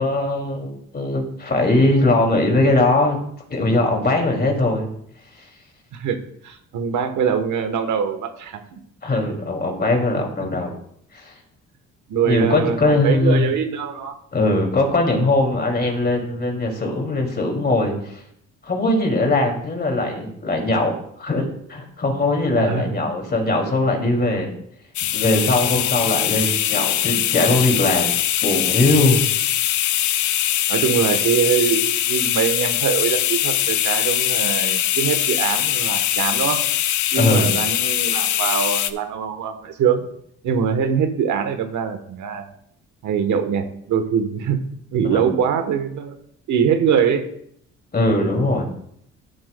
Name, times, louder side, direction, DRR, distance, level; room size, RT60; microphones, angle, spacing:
voice 1, 0.0-3.2 3.5-4.9 9.0-10.7 11.1-11.3 12.2-13.5 14.3-18.1 18.6-24.5 25.1-28.1 28.4-29.2 37.2-37.5 45.1-45.2 47.9-48.7, left 2 dB, 30° left, 2 dB, 2.5 m, -20 dB
voice 2, 6.4-8.8 10.4-10.5 12.1-14.1 22.6-22.9 25.1-25.2 30.7-36.6 37.1-40.1 40.4-42.5 43.0-44.6 44.9-46.2 46.5-47.2, right 7 dB, 75° right, 8 dB, 1.1 m, -23 dB
sound 1, 24.9-38.9, left 12 dB, 75° left, 0.6 m, -22 dB
13.0 x 7.5 x 2.2 m, 0.69 s
cardioid pair, 90°, 30 cm